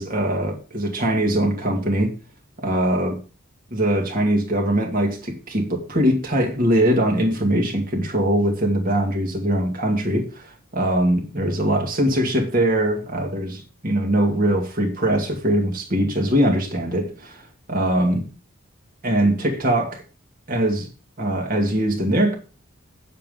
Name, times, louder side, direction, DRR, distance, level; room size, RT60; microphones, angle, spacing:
voice 1, 0.0-2.1 2.6-3.2 3.7-18.2 19.0-20.0 20.5-20.9 21.2-22.4, right 1 dB, 40° right, 2.2 m, -22 dB
9.4 x 7.6 x 5.2 m
head